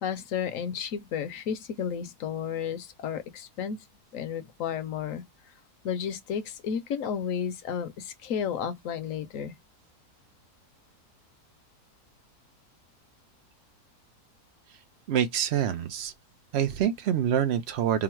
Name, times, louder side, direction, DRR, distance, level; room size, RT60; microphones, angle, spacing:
voice 1, 0.0-3.8 4.1-5.2 5.8-9.5, left 7 dB, 65° left, 1.0 m, -32 dB
voice 2, 15.1-16.1 16.5-18.0, right 9 dB, 90° right, 0.5 m, -26 dB
3.8 x 2.1 x 4.4 m
omnidirectional pair, 1.7 m